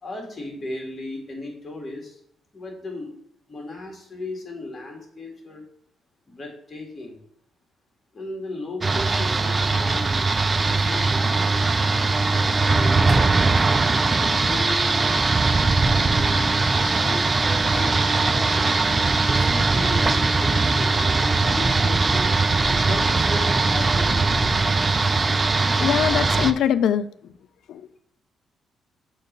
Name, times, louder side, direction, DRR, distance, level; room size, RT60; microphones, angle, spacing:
voice 1, 0.0-2.2 2.5-3.1 3.5-5.6 6.3-7.2 8.1-11.9 12.7-15.2 15.7-18.7 19.2-22.3 22.6-24.5, left 2 dB, 30° left, 0 dB, 1.9 m, -36 dB
sound 1, 8.8-26.5, right 3 dB, 25° right, 0.4 m, -20 dB
voice 2, 25.8-27.1 27.7-28.0, left 9 dB, 75° left, 14 dB, 0.3 m, -22 dB
6.3 x 3.1 x 5.1 m, 0.68 s
cardioid pair, 105°, 0 cm